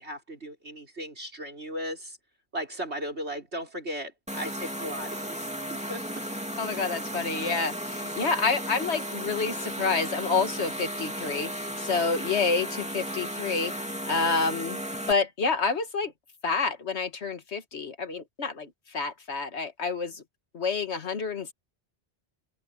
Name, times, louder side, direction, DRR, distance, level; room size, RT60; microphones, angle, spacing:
voice 1, 0.0-2.2 2.5-6.0 7.4-7.6, equal, 85° right, 5.8 m, -37 dB
sound 1, 4.3-15.1, equal, 5° right, 2.7 m, -35 dB
voice 2, 6.6-11.5 11.8-14.8 15.1-16.1 16.4-20.2 20.5-21.5, left 4 dB, 90° left, 1.9 m, -28 dB
omnidirectional pair, 1.1 m